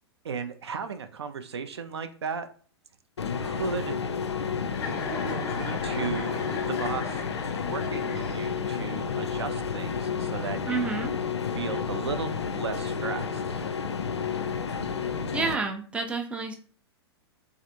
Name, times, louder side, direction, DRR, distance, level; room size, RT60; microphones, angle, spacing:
voice 1, 0.2-2.5 3.4-4.0 5.3-7.2 7.6-11.0 11.5-13.4, right 6 dB, 75° right, 9 dB, 0.4 m, -35 dB
sound 1, 3.2-15.6, left 6 dB, 80° left, 0.4 m, -31 dB
Chuckle chortle, 4.7-8.7, left 4 dB, 25° left, 0.7 m, -37 dB
voice 2, 10.7-11.1 15.3-16.6, right 4 dB, 10° right, 4 dB, 0.4 m, -29 dB
3.2 x 2.4 x 2.6 m, 0.43 s
figure-of-eight pair, 100°, 14 cm